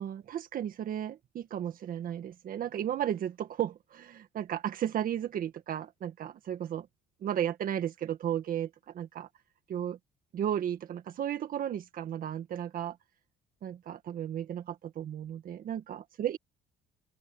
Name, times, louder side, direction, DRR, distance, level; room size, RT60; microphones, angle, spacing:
voice 1, 0.0-6.9 7.2-9.3 9.7-10.0 10.3-13.0 13.6-16.4, right 10 dB, 55° right, 1.8 m, -34 dB
open air
cardioid pair, 110°, 17 cm